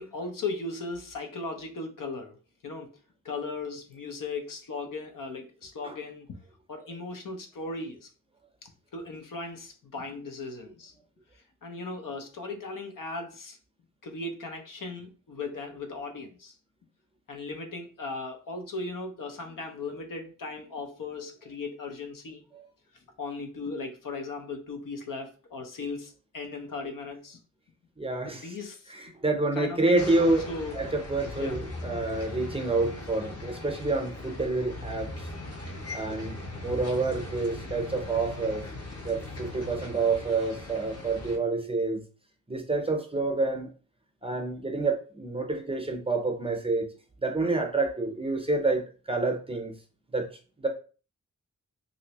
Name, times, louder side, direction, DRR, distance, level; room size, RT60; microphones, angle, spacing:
voice 1, 0.0-2.3 2.6-2.9 3.2-6.4 6.7-8.1 8.6-10.9 11.6-13.6 14.0-16.5 17.3-22.4 23.2-27.4 28.2-28.9 29.5-30.8 31.4-31.6, left 3 dB, 80° left, 4 dB, 0.7 m, -37 dB
voice 2, 28.0-28.6 28.9-30.4 30.7-35.3 35.9-36.3 36.6-38.6 39.0-42.0 42.5-43.7 44.2-46.9 47.2-49.7 50.1-50.3 50.6-50.7, right 3 dB, 20° right, 3 dB, 0.6 m, -28 dB
sound 1, 30.0-41.4, left 2 dB, 50° left, 0.9 m, -39 dB
3.1 x 2.7 x 2.9 m, 0.37 s
wide cardioid pair, 120°, 32 cm